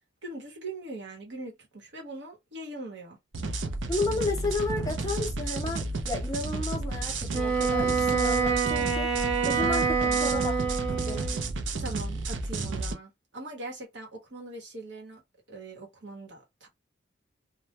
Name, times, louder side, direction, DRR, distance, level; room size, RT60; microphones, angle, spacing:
voice 1, 0.2-3.2 9.7-10.8 11.8-15.2 15.5-16.7, right 2 dB, 70° right, 1.0 m, -41 dB
sound 1, 3.3-12.9, right 2 dB, 85° right, 0.5 m, -32 dB
voice 2, 3.9-10.7 11.1-11.4, left 3 dB, 20° left, 0.5 m, -33 dB
Wind instrument woodwind instrument, 7.3-11.5, right 5 dB, 30° right, 0.7 m, -27 dB
2.2 x 2.1 x 2.8 m
head